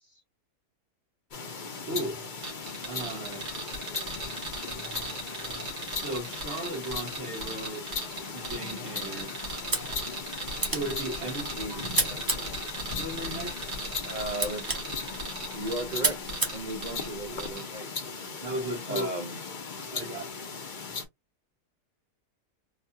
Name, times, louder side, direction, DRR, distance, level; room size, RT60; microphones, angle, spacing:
sound 1, 1.3-21.0, left 5 dB, 45° left, 0.6 m, -38 dB
voice 1, 1.9-2.2 2.9-3.5 5.9-7.9 8.3-9.3 10.7-12.1 12.9-13.8 18.4-19.1 19.9-20.3, right 1 dB, 45° right, 1.5 m, -36 dB
sound 2, 2.4-17.1 17.4-17.6, right 3 dB, 80° right, 2.0 m, -38 dB
sound 3, 9.5-17.5, right 2 dB, 20° right, 0.7 m, -34 dB
voice 2, 11.2-12.2 14.0-14.7 15.5-18.1 18.9-19.4, right 1 dB, 60° right, 0.4 m, -36 dB
4.1 x 2.4 x 2.6 m
omnidirectional pair, 1.7 m